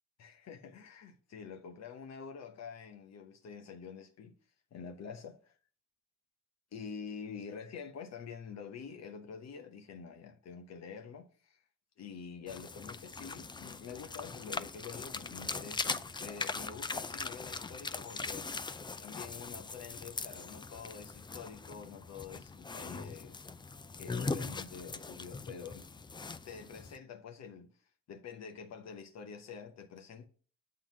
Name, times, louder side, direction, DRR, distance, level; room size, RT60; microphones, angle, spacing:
voice 1, 0.2-4.3 4.7-5.5 6.7-11.6 12.0-18.5 19.0-23.4 24.0-25.9 26.4-27.7 28.1-30.3, left 6 dB, 60° left, 0.9 m, -47 dB
sound 1, 12.5-27.0, left 4 dB, 15° left, 0.4 m, -41 dB
7.6 x 3.8 x 5.9 m
cardioid pair, 90°, 30 cm